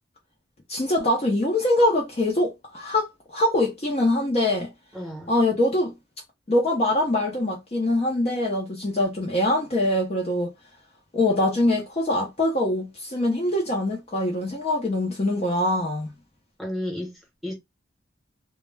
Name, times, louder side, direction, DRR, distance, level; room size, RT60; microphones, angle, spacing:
voice 1, 0.7-4.7 5.3-5.9 6.5-10.5 11.1-16.1, left 1 dB, 30° left, 0.5 m, -23 dB
voice 2, 4.9-5.4 16.6-17.5, left 1 dB, ahead, 0.8 m, -33 dB
2.2 x 2.1 x 3.1 m
head